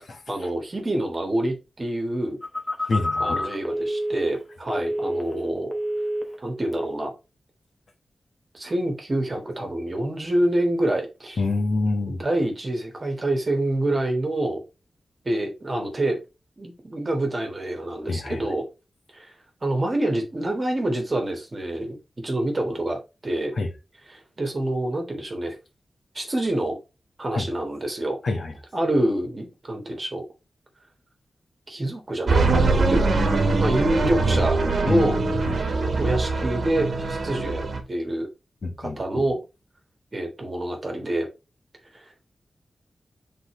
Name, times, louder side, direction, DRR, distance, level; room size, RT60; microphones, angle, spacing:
voice 1, 0.3-2.4 3.2-5.7 6.4-7.1 8.5-11.4 12.2-14.6 15.2-16.2 16.6-18.6 19.1-19.3 19.6-22.0 22.2-23.5 24.1-25.6 26.1-26.8 27.2-28.2 28.7-30.2 31.7-35.2 35.6-38.3 38.8-39.4 40.1-41.3 41.9-42.1, right 1 dB, 30° right, 1.6 m, -27 dB
Telephone, 2.4-5.5 5.7-6.4 6.7-7.0, equal, 10° left, 0.9 m, -28 dB
voice 2, 2.9-3.4 11.4-12.2 18.1-18.4 23.6-23.7 27.3-27.4 28.2-28.5 34.9-35.4 38.6-39.0, left 3 dB, 60° left, 1.5 m, -26 dB
sound 1, 32.3-37.8, right 3 dB, 60° right, 1.3 m, -22 dB
7.9 x 3.9 x 3.2 m
wide cardioid pair, 155°, 0 cm